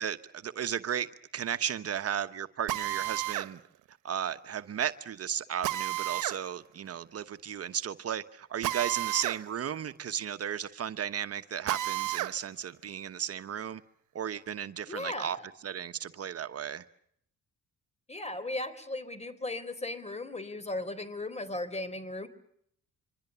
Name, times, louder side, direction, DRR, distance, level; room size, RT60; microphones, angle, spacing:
voice 1, 0.0-3.6 4.0-13.8 14.1-15.4 15.6-16.8, right 9 dB, 50° right, 1.1 m, -34 dB
Drill, 2.7-3.5 5.6-6.4 8.6-9.4 9.8-9.9 11.7-12.4, right 15 dB, 85° right, 1.1 m, -32 dB
voice 2, 14.9-15.4 18.1-22.3, left 2 dB, 20° left, 4.1 m, -36 dB
25.5 x 25.0 x 6.9 m
cardioid pair, 90°, 30 cm